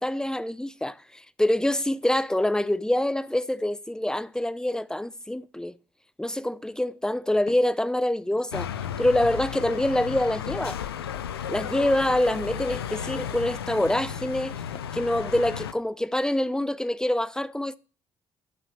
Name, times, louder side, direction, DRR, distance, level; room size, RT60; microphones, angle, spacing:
voice 1, 0.0-5.8 6.2-8.7 9.0-10.8 11.5-14.5 14.9-17.8, left 1 dB, 5° left, 0.7 m, -25 dB
Walk footsteps, 7.5-7.8 8.4-8.5 9.3-9.4 10.2-10.4 11.1-11.3 12.0-12.2 12.9-13.1 13.9-14.1 14.7-14.9, left 7 dB, 50° left, 1.0 m, -48 dB
sound 1, 8.5-15.7, left 9 dB, 85° left, 0.5 m, -34 dB
11.5 x 5.9 x 6.5 m
figure-of-eight pair, 45°, 12 cm